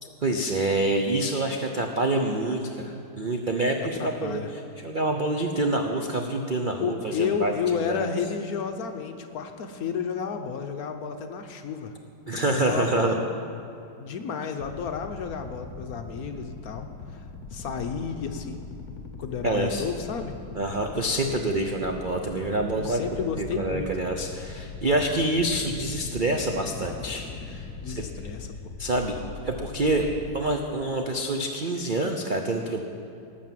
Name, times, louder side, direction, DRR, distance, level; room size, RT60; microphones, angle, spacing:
voice 1, 0.0-4.4 4.8-7.5 7.9-8.1 12.3-13.2 19.4-19.8 20.5-23.0 23.4-28.0 28.8-29.1 29.4-30.1 30.3-32.8, right 2 dB, 70° right, 3 dB, 0.4 m, -27 dB
voice 2, 3.9-4.5 6.8-11.9 12.3-13.2 14.0-18.7 19.2-20.4 22.8-23.9 27.8-28.5, left 6 dB, 60° left, 6 dB, 1.0 m, -32 dB
sound 1, 14.6-30.4, left 4 dB, 45° left, 1.2 m, -40 dB
18.0 x 6.6 x 7.5 m, 2.6 s
omnidirectional pair, 2.1 m